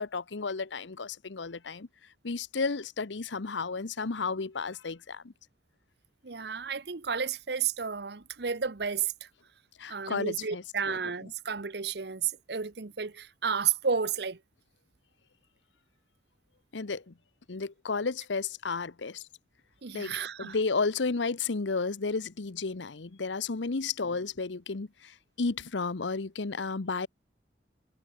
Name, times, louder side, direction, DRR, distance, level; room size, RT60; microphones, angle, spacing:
voice 1, 0.0-1.9 2.2-5.2 9.8-11.0 16.7-17.1 17.5-19.2 19.9-25.1 25.4-27.1, left 4 dB, 85° left, 0.9 m, -32 dB
voice 2, 6.2-9.1 9.9-14.4 19.8-20.6, right 6 dB, 60° right, 0.9 m, -32 dB
head